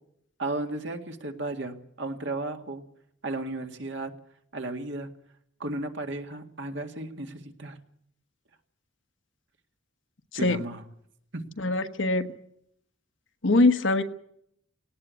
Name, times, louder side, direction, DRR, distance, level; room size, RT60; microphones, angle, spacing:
voice 1, 0.4-2.8 3.2-4.1 4.5-5.1 5.6-7.8 10.3-10.8 11.3-11.4, right 2 dB, 60° right, 5 dB, 2.0 m, -34 dB
voice 2, 11.6-12.3 13.4-14.0, left 2 dB, 65° left, 8 dB, 1.3 m, -22 dB
18.5 x 18.0 x 8.3 m, 0.72 s
head